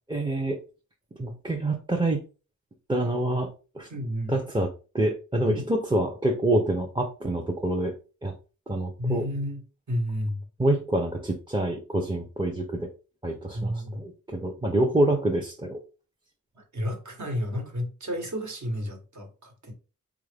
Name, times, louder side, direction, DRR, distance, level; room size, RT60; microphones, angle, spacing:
voice 1, 0.1-0.6 1.2-2.2 2.9-3.9 4.3-4.7 4.9-7.9 8.2-8.3 8.7-9.2 10.6-12.9 13.2-15.8, right 1 dB, 15° right, 2 dB, 0.5 m, -26 dB
voice 2, 3.9-4.4 5.5-5.7 9.0-9.6 9.9-10.4 13.5-14.0 16.6-19.7, equal, 65° right, 2 dB, 1.3 m, -31 dB
3.9 x 2.4 x 3.3 m, 0.34 s
wide cardioid pair, 70°, 31 cm